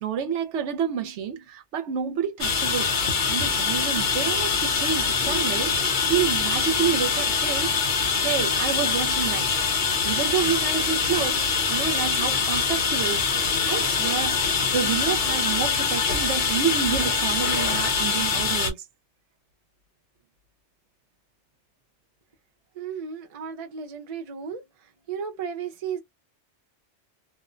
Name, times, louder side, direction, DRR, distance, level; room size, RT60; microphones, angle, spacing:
voice 1, 0.0-2.9 3.3-5.8 6.1-7.7 8.2-9.5 10.0-14.4 14.7-18.8, right 8 dB, 75° right, 0.9 m, -29 dB
sound 1, 2.4-18.7, left 5 dB, 50° left, 0.8 m, -24 dB
voice 2, 22.8-24.6 25.1-26.0, right 7 dB, 40° right, 0.5 m, -34 dB
2.4 x 2.1 x 2.4 m
omnidirectional pair, 1.2 m